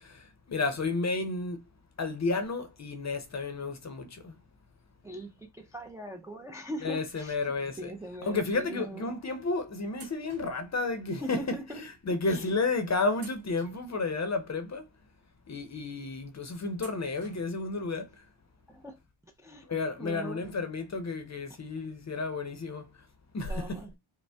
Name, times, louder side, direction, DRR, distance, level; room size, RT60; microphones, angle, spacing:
voice 1, 0.5-1.6 2.0-4.3 6.8-7.9 8.2-14.8 15.5-18.1 19.7-22.9 23.3-23.8, left 3 dB, 35° left, 0.7 m, -32 dB
voice 2, 5.0-9.1 11.2-11.8 12.2-12.5 18.7-19.0 19.4-19.7 20.0-20.5 23.5-23.9, right 1 dB, 5° right, 0.4 m, -41 dB
sound 1, 7.1-7.9 8.7-8.9 9.9-11.4 11.7-11.8 12.5-12.7 13.1-14.5 15.0-15.1 16.8-17.7 18.0-18.1 19.3-19.4 19.7-19.8, right 5 dB, 45° right, 1.8 m, -55 dB
5.2 x 2.1 x 3.4 m
wide cardioid pair, 160°, 49 cm